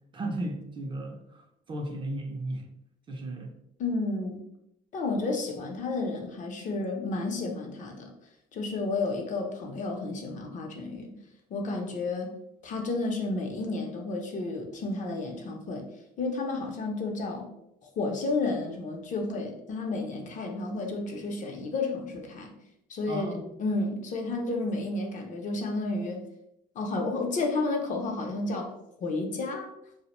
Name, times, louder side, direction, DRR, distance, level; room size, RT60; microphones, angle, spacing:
voice 1, 0.1-1.4 1.7-2.6 3.1-3.6 23.1-23.5, right 1 dB, 30° right, 3 dB, 0.4 m, -35 dB
voice 2, 3.8-4.4 4.9-8.1 8.5-11.1 11.5-12.3 12.6-15.8 16.2-17.5 17.8-22.5 22.9-26.2 26.8-28.7 29.0-29.7, left 3 dB, 50° left, 2 dB, 0.5 m, -31 dB
2.4 x 2.0 x 2.9 m, 0.79 s
cardioid pair, 110°, 17 cm